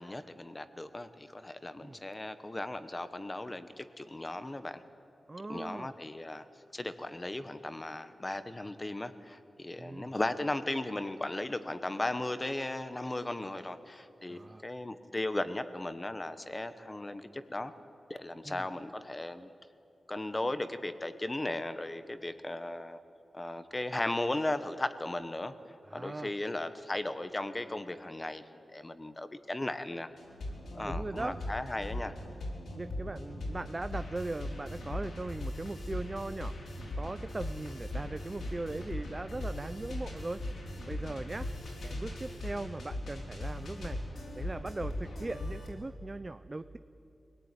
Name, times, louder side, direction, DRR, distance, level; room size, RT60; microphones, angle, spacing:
voice 1, 0.0-4.8 5.5-6.4 6.7-17.7 18.1-19.5 20.1-23.0 23.3-28.4 28.7-30.1 30.7-32.1, left 2 dB, 20° left, 11 dB, 1.1 m, -36 dB
voice 2, 5.3-5.9 9.8-10.1 14.3-14.6 18.4-18.7 25.9-26.3 30.9-31.4 32.7-36.5 37.0-40.4 40.9-41.5 41.8-46.8, right 2 dB, 25° right, 11 dB, 0.5 m, -39 dB
sound 1, 30.2-45.7, left 1 dB, 80° left, 5.5 m, -39 dB
25.0 x 18.0 x 9.8 m, 2.8 s
wide cardioid pair, 155°, 0 cm